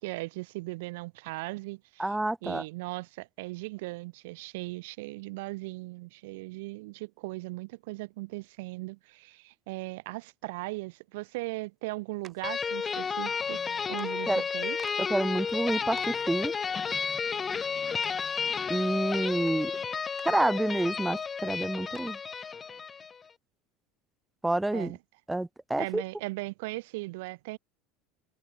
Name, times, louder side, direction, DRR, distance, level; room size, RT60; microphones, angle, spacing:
voice 1, 0.0-2.1 2.4-13.6 13.9-14.8 24.7-25.0 25.8-27.6, right 23 dB, 80° right, 2.2 m, -38 dB
voice 2, 2.0-2.6 14.3-14.4 15.0-16.5 18.7-19.7 20.2-22.2 24.4-25.0 25.3-26.0, right 1 dB, 5° right, 0.4 m, -28 dB
sound 1, 12.2-12.5 13.6-13.7 14.0-14.1 14.8-15.0 15.5-15.6 16.0-16.3 17.6-17.7 18.0-18.1 19.5-19.6 20.2-20.3 20.9-21.0 21.3-21.4 21.9-22.2, right 8 dB, 25° right, 4.3 m, -51 dB
sound 2, 12.4-23.2, left 6 dB, 20° left, 1.6 m, -32 dB
cardioid pair, 160°, 0 cm